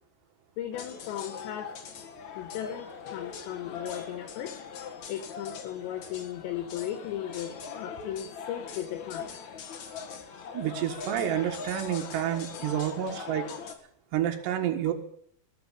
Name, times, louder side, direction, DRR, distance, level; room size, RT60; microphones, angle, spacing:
voice 1, 0.6-1.7 2.4-4.6 5.1-9.4 13.5-13.6, left 11 dB, 80° left, 6 dB, 3.5 m, -36 dB
sound 1, 0.7-13.8, left 6 dB, 55° left, 2.4 m, -41 dB
voice 2, 10.5-13.5 14.1-14.9, right 11 dB, 75° right, 3 dB, 3.7 m, -29 dB
19.5 x 8.0 x 8.3 m, 0.64 s
omnidirectional pair, 5.1 m